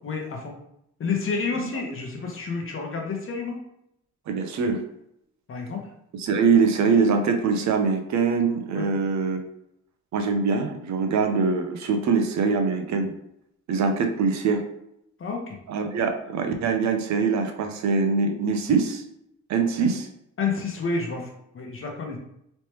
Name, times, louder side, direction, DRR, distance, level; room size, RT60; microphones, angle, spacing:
voice 1, 0.0-0.6 1.0-3.6 5.5-5.9 8.7-8.9 15.2-15.6 20.4-22.2, left 4 dB, 45° left, 1 dB, 0.9 m, -29 dB
voice 2, 4.3-4.8 6.2-9.4 10.1-13.1 13.7-14.6 15.7-19.0 19.5-20.1, right 5 dB, 65° right, 5 dB, 0.6 m, -23 dB
3.2 x 3.1 x 3.0 m, 0.79 s
cardioid pair, 90°, 30 cm